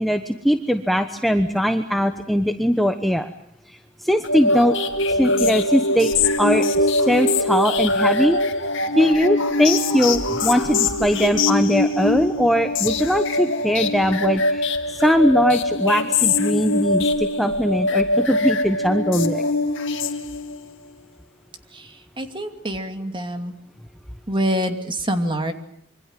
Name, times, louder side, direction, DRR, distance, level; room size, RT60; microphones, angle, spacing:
voice 1, 0.0-3.3 3.7-4.8 5.1-6.1 6.4-8.4 8.9-19.4, equal, ahead, 6 dB, 1.1 m, -20 dB
sound 1, 4.2-20.7, left 2 dB, 65° left, 2.5 m, -22 dB
voice 2, 21.7-23.5 24.3-25.5, equal, 25° right, 6 dB, 2.7 m, -26 dB
26.0 x 25.0 x 7.6 m, 0.65 s
head